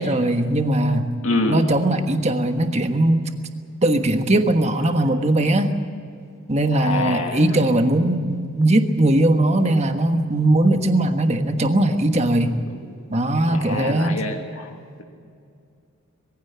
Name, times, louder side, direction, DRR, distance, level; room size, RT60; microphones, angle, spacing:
voice 1, 0.0-1.1 1.4-3.3 3.8-5.7 6.5-12.5 13.1-14.2, right 1 dB, 30° right, 6 dB, 1.4 m, -19 dB
voice 2, 1.2-1.6 6.7-7.4 13.5-14.7, left 2 dB, 65° left, 2 dB, 2.1 m, -25 dB
22.0 x 16.0 x 9.7 m, 2.4 s
head